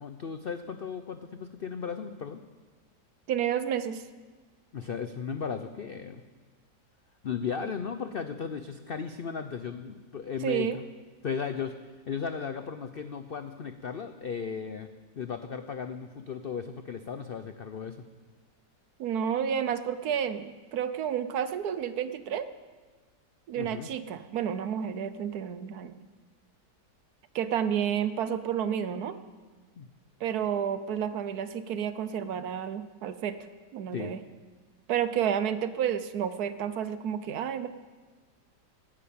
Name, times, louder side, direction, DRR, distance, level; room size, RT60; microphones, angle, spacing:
voice 1, 0.0-2.4 4.7-6.2 7.2-10.8 11.2-11.7 12.1-14.9 15.2-18.0 23.6-23.9 29.8-29.9 33.9-34.1, left 6 dB, 75° left, 9 dB, 0.5 m, -35 dB
voice 2, 3.3-4.0 10.4-10.8 19.0-22.5 23.5-26.0 27.3-29.2 30.2-33.4 33.7-34.2 34.9-37.7, right 9 dB, 65° right, 12 dB, 1.2 m, -30 dB
13.0 x 10.0 x 8.6 m, 1.4 s
omnidirectional pair, 1.9 m